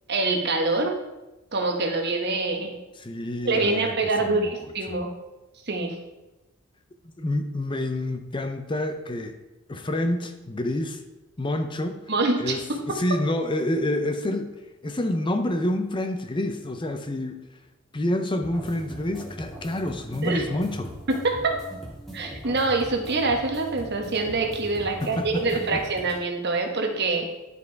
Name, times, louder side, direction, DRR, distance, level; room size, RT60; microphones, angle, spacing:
voice 1, 0.1-1.0 1.5-2.8 3.4-5.1 5.6-6.0 12.1-12.8 20.2-20.4 21.1-21.5 22.1-27.3, right 3 dB, 50° right, 3 dB, 1.3 m, -25 dB
voice 2, 3.0-3.9 4.2-5.0 7.2-9.4 9.7-11.0 11.4-12.1 12.4-17.4 17.9-21.0 25.0-25.8, left 1 dB, 20° left, 7 dB, 0.6 m, -28 dB
sound 1, 18.4-26.2, right 1 dB, ahead, 1.9 m, -41 dB
11.0 x 5.4 x 4.6 m, 1.0 s
head